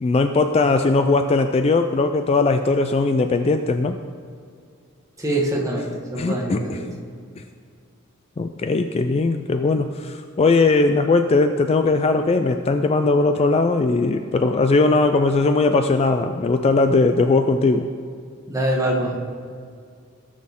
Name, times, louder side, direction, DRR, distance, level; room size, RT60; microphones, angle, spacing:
voice 1, 0.0-4.0 6.1-6.8 7.4-7.5 8.4-17.9, left 3 dB, 30° left, 8 dB, 0.3 m, -19 dB
voice 2, 5.2-6.9 18.5-19.2, right 1 dB, 15° right, -2 dB, 1.4 m, -24 dB
16.5 x 6.3 x 3.7 m, 2.2 s
head